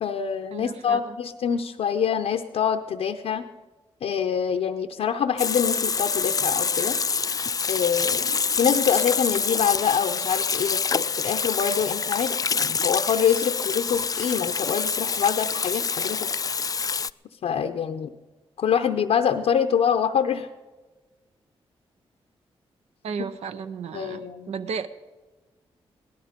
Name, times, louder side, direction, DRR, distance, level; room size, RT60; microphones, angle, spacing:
voice 1, 0.0-3.5 4.0-6.9 7.7-8.3 8.6-16.3 17.4-18.1 18.6-20.5 23.9-24.5, left 8 dB, 80° left, 4 dB, 0.7 m, -25 dB
voice 2, 0.5-1.2 23.0-24.9, right 6 dB, 85° right, 12 dB, 0.7 m, -34 dB
Water tap faucet / Sink (filling or washing), 5.4-17.1, left 5 dB, 35° left, 0.3 m, -26 dB
17.5 x 12.5 x 5.1 m, 1.2 s
cardioid pair, 60°, 11 cm